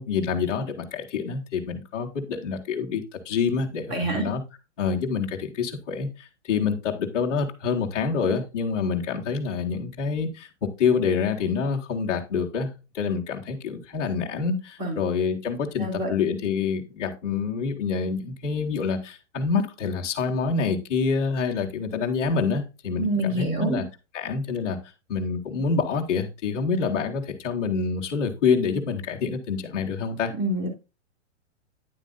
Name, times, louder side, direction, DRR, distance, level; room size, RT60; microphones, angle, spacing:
voice 1, 0.0-4.4 4.8-10.5 10.8-12.7 12.9-23.8 24.1-24.8 25.1-30.3, left 5 dB, 5° left, 0.3 m, -27 dB
voice 2, 3.9-4.3 14.8-15.0 15.8-16.1 23.0-23.8 30.4-30.8, right 1 dB, 40° right, 3.5 m, -26 dB
9.8 x 7.6 x 2.5 m
hypercardioid pair, 165°, 36 cm